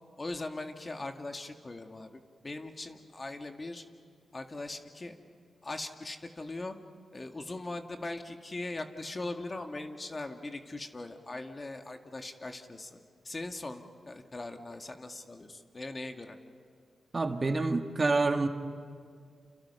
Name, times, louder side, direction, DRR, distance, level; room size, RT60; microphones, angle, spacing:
voice 1, 0.2-3.8 4.3-5.2 5.6-6.8 7.1-13.0 13.2-16.4, left 2 dB, 35° left, 5 dB, 1.9 m, -40 dB
voice 2, 17.1-18.5, right 3 dB, 40° right, 5 dB, 1.9 m, -27 dB
29.5 x 27.5 x 5.7 m, 2.1 s
cardioid pair, 50°, 0 cm